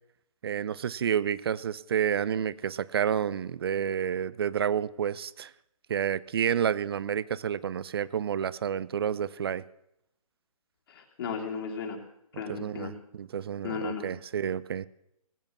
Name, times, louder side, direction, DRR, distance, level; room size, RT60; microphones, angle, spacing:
voice 1, 0.4-5.5 5.9-9.6 12.5-14.9, right 8 dB, 40° right, 20 dB, 0.6 m, -30 dB
voice 2, 10.9-12.0 12.4-12.9 13.6-14.1, left 5 dB, 40° left, 1 dB, 3.1 m, -35 dB
19.5 x 8.7 x 7.3 m, 0.79 s
figure-of-eight pair, 145°, 19 cm